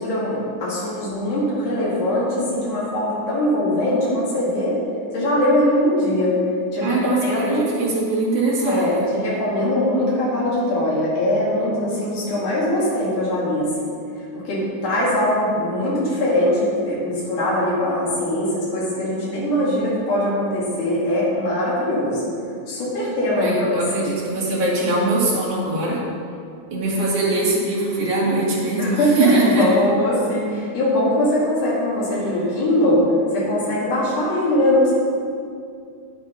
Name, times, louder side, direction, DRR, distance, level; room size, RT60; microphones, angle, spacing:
voice 1, 0.0-4.8 5.1-6.4 6.7-7.7 8.7-13.9 14.3-22.3 22.7-23.7 24.0-24.1 28.8-33.0 33.3-34.9, left 1 dB, 85° left, -7 dB, 3.9 m, -21 dB
voice 2, 6.8-9.0 23.3-26.0 26.7-29.6, right 2 dB, 55° right, -5 dB, 3.2 m, -21 dB
9.4 x 8.7 x 5.3 m, 2.4 s
omnidirectional pair, 3.5 m